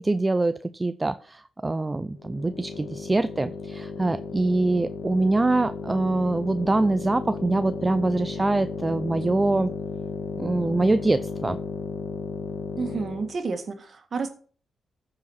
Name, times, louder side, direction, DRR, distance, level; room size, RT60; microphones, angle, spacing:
voice 1, 0.0-9.7 10.4-11.6, right 2 dB, 20° right, 0.4 m, -24 dB
sound 1, 2.1-13.4, left 5 dB, 75° left, 1.8 m, -34 dB
voice 2, 12.8-14.3, right 4 dB, 50° right, 1.6 m, -30 dB
14.5 x 4.9 x 4.5 m
cardioid pair, 90°, 0 cm